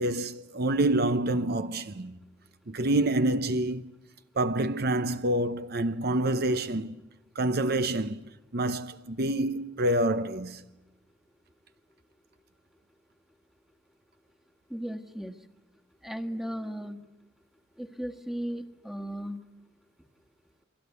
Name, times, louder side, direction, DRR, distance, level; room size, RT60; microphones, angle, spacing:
voice 1, 0.0-2.2 2.7-3.9 4.4-6.9 7.4-8.2 8.5-10.6, right 1 dB, 55° right, 0.8 m, -27 dB
voice 2, 14.7-15.4 16.0-17.0 17.8-19.4, equal, ahead, 1.5 m, -36 dB
29.0 x 22.0 x 8.2 m
head